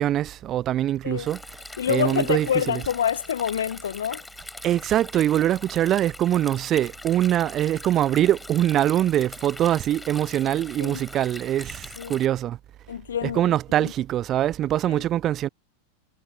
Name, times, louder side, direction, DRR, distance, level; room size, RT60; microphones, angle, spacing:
voice 1, 0.0-1.4 1.9-2.8 4.6-12.6 13.2-15.5, right 12 dB, 30° right, 0.6 m, -23 dB
Stream, 1.3-12.3, left 2 dB, 5° left, 5.0 m, -42 dB
voice 2, 1.8-4.2 10.8-11.0 12.0-12.2 12.9-13.9 14.9-15.0, left 9 dB, 70° left, 1.0 m, -27 dB
figure-of-eight pair, 90°, 0 cm